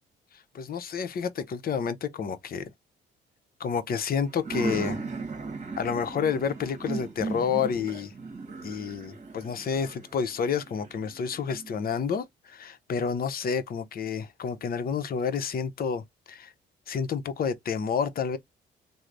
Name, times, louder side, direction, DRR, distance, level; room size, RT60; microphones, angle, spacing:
voice 1, 0.5-2.7 3.6-5.0 5.8-8.1 8.6-16.5 16.9-18.4, left 6 dB, 50° left, 0.7 m, -29 dB
sound 1, 4.3-11.8, right 4 dB, 35° right, 1.0 m, -37 dB
3.2 x 2.0 x 3.8 m
cardioid pair, 90°, 20 cm